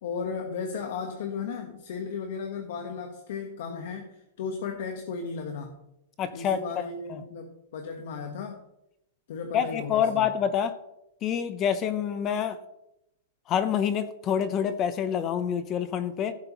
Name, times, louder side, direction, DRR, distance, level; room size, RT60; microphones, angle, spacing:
voice 1, 0.0-5.8 6.3-8.6 9.3-10.3, left 5 dB, 65° left, 4 dB, 1.2 m, -35 dB
voice 2, 6.2-6.6 7.1-7.2 9.5-10.7 11.2-12.6 13.5-16.4, left 8 dB, 25° left, 12 dB, 0.7 m, -27 dB
15.5 x 7.8 x 3.0 m, 0.86 s
supercardioid pair, 160°, 0 cm